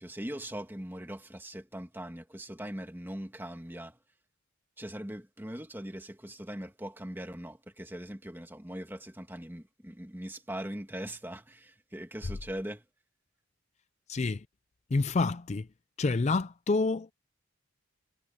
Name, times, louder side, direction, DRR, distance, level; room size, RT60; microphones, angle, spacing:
voice 1, 0.0-4.0 4.8-12.8, right 1 dB, 10° right, 1.7 m, -41 dB
voice 2, 14.1-14.4 14.9-15.7 16.0-17.1, left 3 dB, 30° left, 0.4 m, -28 dB
head